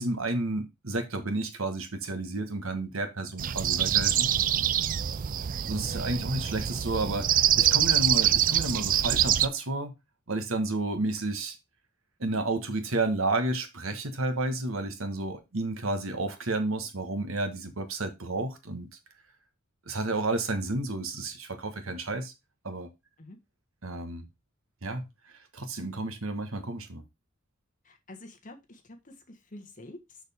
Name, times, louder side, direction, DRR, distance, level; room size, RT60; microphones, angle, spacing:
voice 1, 0.0-4.3 5.7-9.9 10.3-11.6 12.2-18.9 19.8-22.3 22.6-22.9 23.8-24.2 24.8-27.0, right 2 dB, 75° right, 1.5 m, -31 dB
sound 1, 3.4-9.5, right 10 dB, 40° right, 0.4 m, -25 dB
voice 2, 27.8-30.2, left 1 dB, 40° left, 1.5 m, -48 dB
6.5 x 6.4 x 3.6 m
head